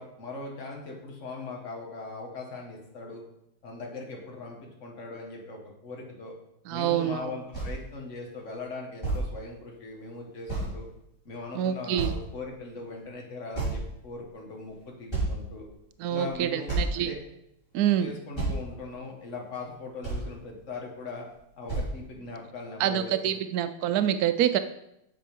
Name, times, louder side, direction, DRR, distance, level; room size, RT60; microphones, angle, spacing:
voice 1, 0.0-3.2 3.6-6.3 6.7-10.9 11.3-15.6 16.1-17.2 18.0-21.2 21.6-23.3, left 3 dB, 40° left, -1 dB, 1.9 m, -40 dB
voice 2, 6.7-7.3 11.5-12.1 16.0-17.1 17.7-18.1 22.8-24.6, right 10 dB, 90° right, 11 dB, 0.8 m, -26 dB
sound 1, 7.2-7.3 7.5-7.8 8.6-8.7 9.0-9.2 10.5-10.7 11.4-11.5 12.0-12.5 13.5-14.1 14.7-14.8 15.1-15.7 16.3-16.4 16.7-17.0 17.9-18.0 18.3-18.6 19.6-19.7 20.0-20.3 21.3-21.4 21.7-21.9, right 2 dB, 10° left, 4.1 m, -30 dB
7.6 x 6.8 x 5.4 m, 0.82 s
omnidirectional pair, 2.2 m